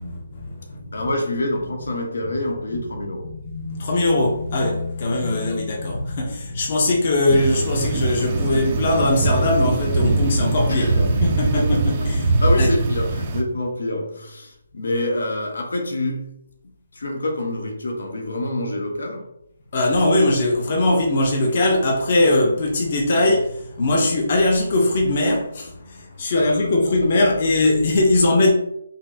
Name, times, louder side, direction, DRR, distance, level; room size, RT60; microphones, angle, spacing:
voice 1, 0.0-1.1 2.7-2.8 3.2-12.3 12.6-12.8 19.7-28.5, left 2 dB, 35° left, -1 dB, 0.6 m, -20 dB
voice 2, 0.9-3.4 5.3-5.5 10.7-12.1 12.4-16.4 16.9-19.3 26.3-26.7 27.0-27.1 27.4-27.5, left 1 dB, 85° left, 2 dB, 1.0 m, -27 dB
sound 1, 7.3-13.4, right 2 dB, 25° right, 0.4 m, -21 dB
5.3 x 2.0 x 2.7 m, 0.76 s
hypercardioid pair, 175°, 0 cm